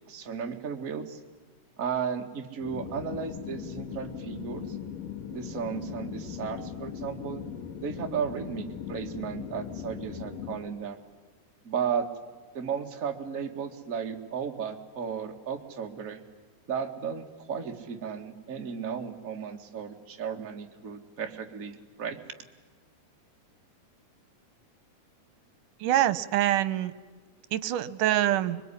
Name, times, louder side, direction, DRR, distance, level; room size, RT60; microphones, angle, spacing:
voice 1, 0.1-1.2 1.8-4.8 5.3-7.4 7.8-11.0 11.6-12.1 12.5-16.2 16.7-22.2, right 7 dB, 30° right, 2 dB, 1.9 m, -34 dB
sound 1, 2.6-10.6, left 8 dB, 90° left, 3.8 m, -39 dB
voice 2, 25.8-26.9 27.5-28.6, right 13 dB, 80° right, 14 dB, 2.5 m, -25 dB
26.5 x 22.5 x 10.0 m, 1.4 s
omnidirectional pair, 3.8 m